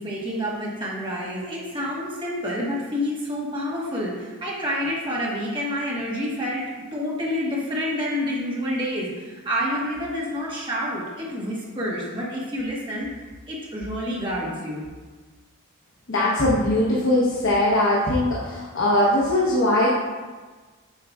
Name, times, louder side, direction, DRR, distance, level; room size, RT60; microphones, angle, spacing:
voice 1, 0.0-13.1 13.5-14.8, equal, 25° right, -5 dB, 1.4 m, -28 dB
voice 2, 16.1-19.9, left 1 dB, 60° left, -6 dB, 0.9 m, -20 dB
8.1 x 5.2 x 2.3 m, 1.3 s
head